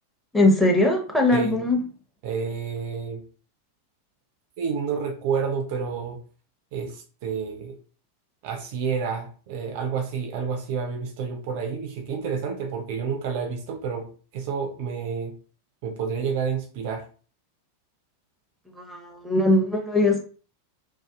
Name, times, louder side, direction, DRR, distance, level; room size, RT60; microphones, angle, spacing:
voice 1, 0.3-1.8 18.7-20.2, left 2 dB, ahead, 0.7 m, -20 dB
voice 2, 2.2-3.2 4.6-6.2 6.7-7.8 8.4-15.3 15.8-17.1, right 6 dB, 50° right, 0.4 m, -29 dB
2.5 x 2.2 x 2.3 m
figure-of-eight pair, 90°, 0 cm